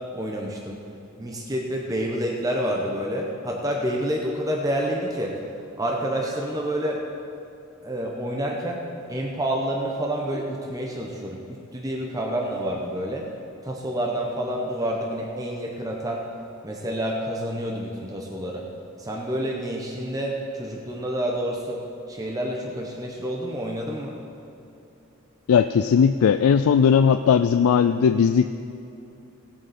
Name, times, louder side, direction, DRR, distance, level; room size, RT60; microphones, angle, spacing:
voice 1, 0.1-0.8 1.2-5.4 5.8-7.0 7.8-8.8 9.1-13.3 13.6-16.2 16.6-18.7 19.0-21.8 22.1-24.2, right 1 dB, 15° right, -1 dB, 0.9 m, -28 dB
voice 2, 25.5-28.4, left 7 dB, 85° left, 10 dB, 0.3 m, -18 dB
17.5 x 7.7 x 4.3 m, 2.8 s
head